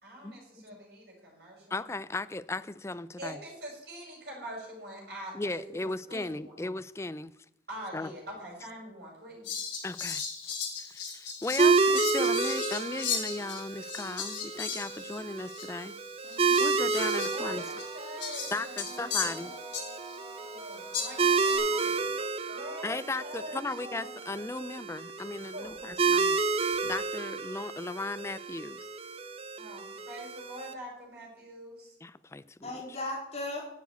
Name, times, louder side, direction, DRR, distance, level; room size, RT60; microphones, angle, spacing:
voice 1, 0.0-1.7 3.2-5.6 6.1-6.6 7.7-9.5 17.3-24.1 25.5-25.8 29.6-32.0, equal, 60° right, -1 dB, 5.6 m, -44 dB
voice 2, 1.7-3.4 5.3-7.3 7.9-8.1 9.8-15.9 16.5-17.8 18.5-19.5 19.9-20.0 22.8-28.9 32.0-32.7, left 2 dB, 15° left, 15 dB, 0.3 m, -37 dB
Fowl, 9.4-15.3 15.5-15.7 16.2-20.2 20.9-21.6, left 6 dB, 80° left, 3.4 m, -37 dB
sound 1, 11.6-30.7, right 4 dB, 30° right, 0.6 m, -30 dB
voice 3, 16.2-17.4 32.6-33.7, left 2 dB, 35° left, -2 dB, 3.7 m, -39 dB
sound 2, 17.5-24.8 25.6-27.1, right 2 dB, 15° right, 1.0 m, -52 dB
10.5 x 7.1 x 8.2 m, 0.81 s
head